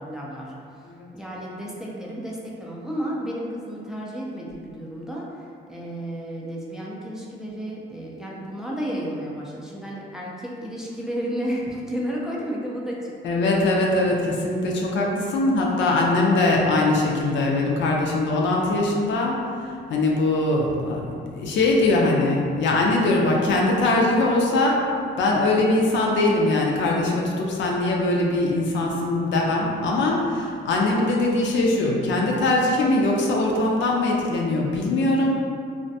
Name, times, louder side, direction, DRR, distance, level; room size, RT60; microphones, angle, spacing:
voice 1, 0.0-0.8 1.1-13.4, equal, ahead, -5 dB, 0.4 m, -32 dB
voice 2, 13.2-19.4 19.9-24.8 25.2-35.4, left 2 dB, 70° left, -1 dB, 0.4 m, -21 dB
2.4 x 2.1 x 2.6 m, 2.3 s
cardioid pair, 90°, 20 cm